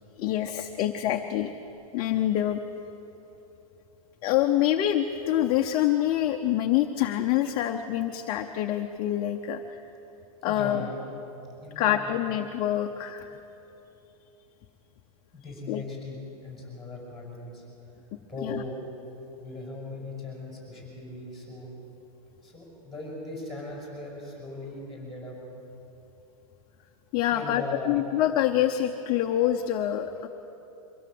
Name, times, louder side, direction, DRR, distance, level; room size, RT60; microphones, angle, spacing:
voice 1, 0.2-1.5 1.9-2.6 4.2-9.6 10.4-10.9 11.8-13.3 15.7-15.8 18.4-18.6 27.1-30.3, left 12 dB, 25° left, 4 dB, 0.7 m, -26 dB
voice 2, 10.4-11.0 11.6-12.2 15.3-17.6 18.3-18.8 19.4-21.7 22.4-25.4 27.3-28.0, left 2 dB, ahead, -3 dB, 6.0 m, -39 dB
24.0 x 16.5 x 7.7 m, 3.0 s
supercardioid pair, 160°, 19 cm